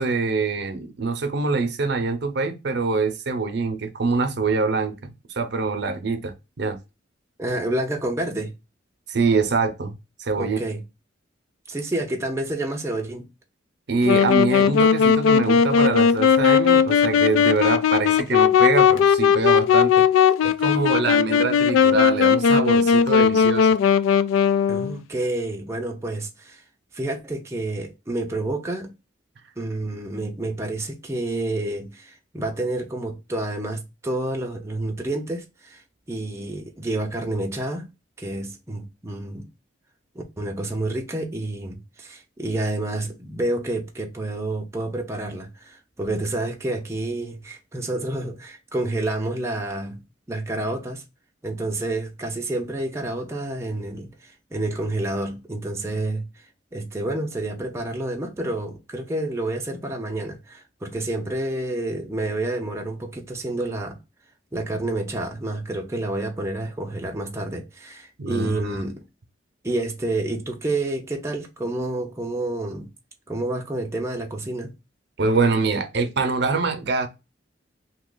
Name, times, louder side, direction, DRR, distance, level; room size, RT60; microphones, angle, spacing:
voice 1, 0.0-5.1 5.4-6.8 9.1-10.6 13.9-20.1 20.4-23.7 68.2-68.8 75.2-77.1, right 4 dB, 60° right, 0.6 m, -24 dB
voice 2, 7.4-8.5 10.4-10.8 11.7-13.3 24.7-26.6 26.9-28.9 29.6-35.8 36.1-37.9 38.2-39.5 40.4-50.0 50.3-51.0 51.4-56.5 56.7-64.0 64.5-69.0 69.6-72.9 73.3-74.7, right 2 dB, 15° right, 0.5 m, -29 dB
Wind instrument woodwind instrument, 14.0-25.0, left 7 dB, 85° left, 0.3 m, -18 dB
2.8 x 2.4 x 3.7 m
head